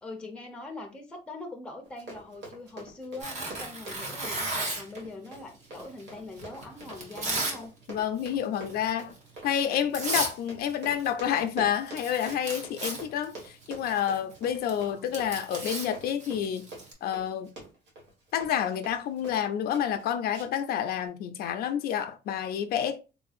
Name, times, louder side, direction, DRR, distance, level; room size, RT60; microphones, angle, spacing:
voice 1, 0.0-7.7 14.8-15.2, left 2 dB, 5° left, 0.5 m, -42 dB
Run, 1.8-19.4 19.7-20.0 20.3-20.7 21.1-21.2, right 2 dB, 90° right, 1.6 m, -46 dB
Tearing, 3.2-5.0 5.7-7.6 7.9-8.3 8.7-8.9 9.6-9.7 9.9-10.4 10.6-11.5 11.7-16.9, right 2 dB, 45° right, 0.9 m, -34 dB
voice 2, 7.9-9.1 9.4-16.7 17.0-17.5 18.3-23.0, left 9 dB, 65° left, 0.4 m, -29 dB
3.7 x 2.6 x 2.4 m
cardioid pair, 165°, 17 cm